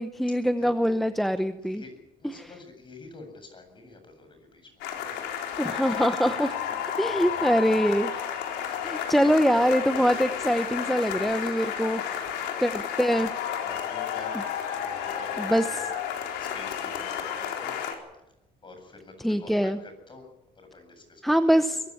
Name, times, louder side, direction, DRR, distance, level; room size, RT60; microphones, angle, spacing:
voice 1, 0.0-1.8 2.3-2.5 5.6-6.5 7.0-8.1 8.8-12.0 12.6-13.3 15.4-15.6 19.2-19.8 21.2-21.8, equal, ahead, 9 dB, 0.9 m, -24 dB
voice 2, 1.6-1.9 2.2-5.2 6.5-7.7 9.1-9.4 11.9-12.4 13.6-14.4 14.7-15.9 16.4-17.8 18.6-20.3 20.5-21.8, left 3 dB, 30° left, 6 dB, 7.9 m, -47 dB
sound 1, 4.8-17.9, left 8 dB, 90° left, 4.1 m, -32 dB
22.5 x 15.5 x 9.8 m, 0.91 s
cardioid pair, 110°, 17 cm